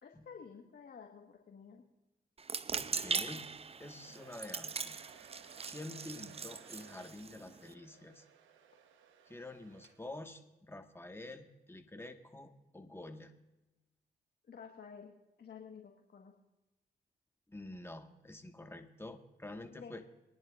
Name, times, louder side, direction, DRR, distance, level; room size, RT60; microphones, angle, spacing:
voice 1, 0.0-1.8 14.5-15.1 15.4-16.3 19.8-20.0, left 6 dB, 55° left, 2 dB, 1.5 m, -51 dB
sound 1, 2.4-7.7, right 5 dB, 30° right, 0.5 m, -40 dB
voice 2, 2.7-3.5 3.8-5.0 5.7-8.2 9.3-13.3 17.5-20.1, left 2 dB, 10° left, 5 dB, 1.5 m, -48 dB
Domestic sounds home sounds, 3.6-10.3, right 8 dB, 90° right, 1.1 m, -60 dB
22.5 x 10.5 x 2.5 m, 1.0 s
supercardioid pair, 45°, 20 cm